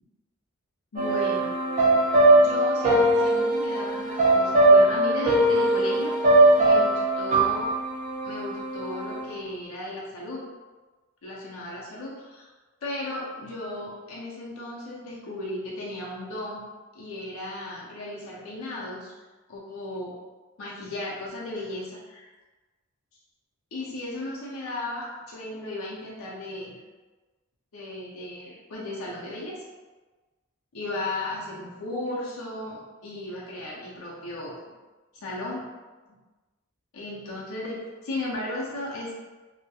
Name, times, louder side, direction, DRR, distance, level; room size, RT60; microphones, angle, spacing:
voice 1, 0.9-1.5 2.4-6.2 6.6-7.7 8.2-10.5 11.2-12.5 12.8-16.6 16.9-19.1 19.5-20.2 20.6-22.3 23.7-26.7 27.7-29.6 30.7-34.6 35.1-35.7 36.9-39.1, left 1 dB, 70° left, -5 dB, 0.5 m, -35 dB
sound 1, 1.0-9.2, right 2 dB, 35° right, 0.5 m, -20 dB
2.2 x 2.0 x 2.8 m, 1.2 s
head